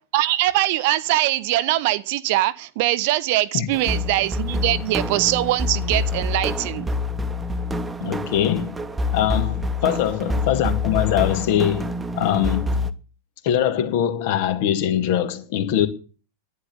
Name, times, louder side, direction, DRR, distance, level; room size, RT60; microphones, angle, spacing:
voice 1, 0.1-6.9 9.8-10.0, right 16 dB, 50° right, 0.9 m, -22 dB
sound 1, 3.7-12.9, left 2 dB, 10° right, 1.1 m, -26 dB
voice 2, 8.0-8.8 9.1-12.8 13.4-15.9, left 11 dB, 50° left, 2.0 m, -22 dB
11.5 x 10.0 x 8.6 m
figure-of-eight pair, 90°, 0 cm